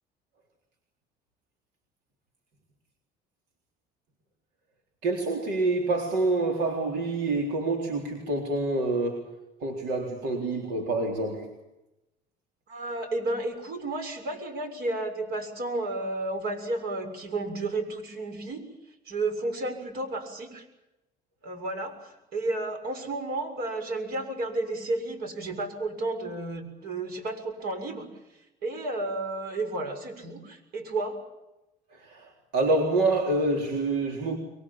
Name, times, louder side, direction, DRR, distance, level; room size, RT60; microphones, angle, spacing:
voice 1, 5.0-9.2 9.6-11.5 32.1-34.4, right 2 dB, 90° right, 2 dB, 4.0 m, -27 dB
voice 2, 12.7-18.6 19.0-20.6 21.4-28.1 28.6-31.2, right 2 dB, 65° right, 7 dB, 6.8 m, -32 dB
24.0 x 23.5 x 7.4 m, 0.95 s
cardioid pair, 110°, 17 cm